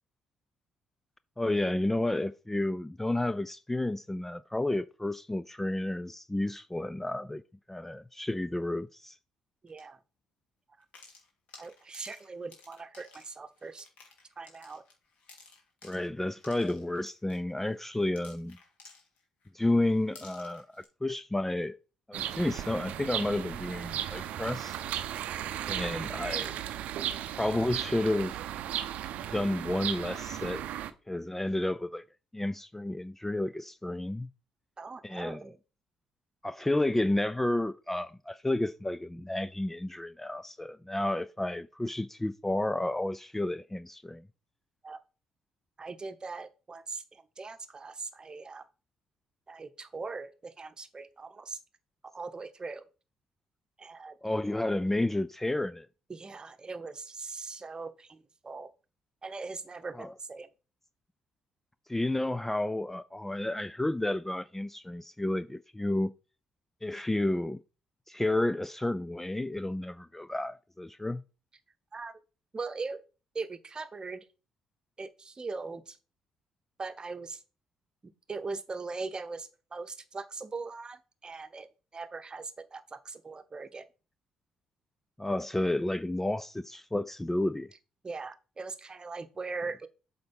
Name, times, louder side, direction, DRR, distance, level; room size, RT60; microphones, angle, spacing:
voice 1, 1.4-7.4 7.7-9.2 15.8-18.6 19.5-21.8 22.1-24.8 25.7-26.6 27.4-28.4 29.3-30.7 31.1-32.0 32.3-34.3 35.0-35.4 36.4-44.2 54.2-55.9 60.0-60.1 61.9-66.1 66.8-67.6 68.1-71.2 85.2-87.7, left 1 dB, 10° left, 0.4 m, -31 dB
voice 2, 9.6-10.0 11.6-13.9 14.4-14.8 34.8-35.6 44.8-45.0 45.8-48.7 49.5-51.6 52.1-52.8 53.8-54.2 56.1-58.7 59.2-60.5 71.9-72.2 72.5-73.0 73.3-74.3 75.0-76.0 76.8-77.4 78.0-81.7 81.9-83.8 88.0-89.9, right 4 dB, 30° right, 0.9 m, -40 dB
sound 1, 9.7-9.9 10.8-19.5 19.9-20.8, left 4 dB, 60° left, 2.5 m, -55 dB
sound 2, 22.1-30.9, right 11 dB, 65° right, 0.6 m, -36 dB
7.7 x 4.0 x 5.4 m
hypercardioid pair, 50°, 3 cm